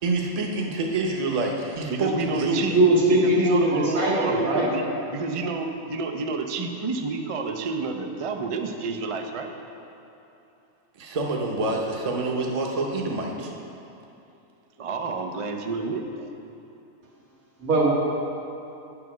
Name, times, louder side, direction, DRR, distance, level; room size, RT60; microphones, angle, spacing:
voice 1, 0.0-2.7 11.0-13.5, right 2 dB, 35° right, 0 dB, 0.8 m, -27 dB
voice 2, 1.9-2.8 3.2-4.8 5.1-9.5 14.8-16.3, right 3 dB, 60° right, 4 dB, 0.3 m, -29 dB
voice 3, 2.5-4.7 17.6-17.9, right 1 dB, 85° right, -6 dB, 2.1 m, -21 dB
9.1 x 4.9 x 6.0 m, 2.8 s
omnidirectional pair, 1.4 m